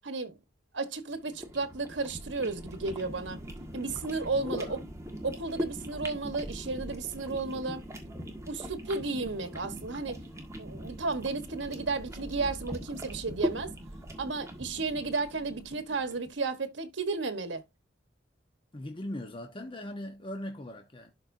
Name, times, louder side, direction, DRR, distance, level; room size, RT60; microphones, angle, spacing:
voice 1, 0.0-0.3 0.7-3.4 3.7-4.8 5.2-7.8 8.5-10.2 10.6-13.7 14.2-17.6, right 3 dB, 85° right, 1.2 m, -33 dB
sound 1, 1.1-16.3, equal, 15° right, 1.7 m, -40 dB
voice 2, 4.3-4.8 18.7-21.1, left 1 dB, 30° left, 1.1 m, -40 dB
12.0 x 4.4 x 2.6 m
head